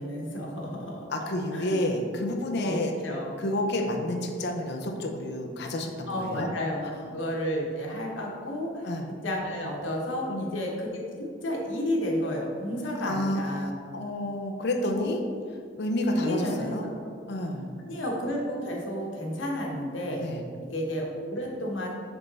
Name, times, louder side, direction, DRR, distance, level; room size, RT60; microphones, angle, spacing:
voice 1, 0.0-1.1 1.5-1.8 2.6-2.8 3.0-3.4 6.1-8.9 9.2-13.8 14.9-15.0 16.1-17.1 17.9-20.2 20.6-21.9, equal, 80° left, -1 dB, 1.2 m, -32 dB
voice 2, 1.1-2.9 3.4-6.5 8.8-9.1 10.3-10.6 13.0-15.2 15.8-16.8 17.3-17.7 20.2-20.4, left 1 dB, 60° left, 2 dB, 0.7 m, -30 dB
7.0 x 3.5 x 4.0 m, 2.2 s
head